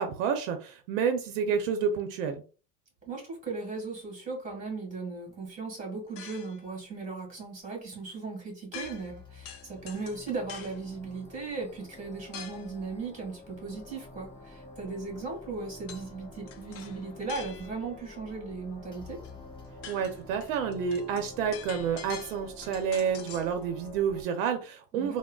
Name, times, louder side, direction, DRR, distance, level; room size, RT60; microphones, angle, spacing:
voice 1, 0.0-2.4 19.9-25.2, right 7 dB, 80° right, 6 dB, 0.7 m, -29 dB
voice 2, 3.0-19.2 24.9-25.2, right 4 dB, 20° right, 1 dB, 1.6 m, -37 dB
sound 1, 6.2-6.7 8.7-9.2 9.4-10.8 12.3-12.7 15.9-16.1 16.5-17.9 19.2-19.3 19.6-23.5, left 8 dB, 40° left, 0.5 m, -45 dB
sound 2, 8.8-24.2, left 2 dB, 10° left, 0.8 m, -48 dB
3.7 x 2.0 x 2.2 m, 0.35 s
supercardioid pair, 125°, 37 cm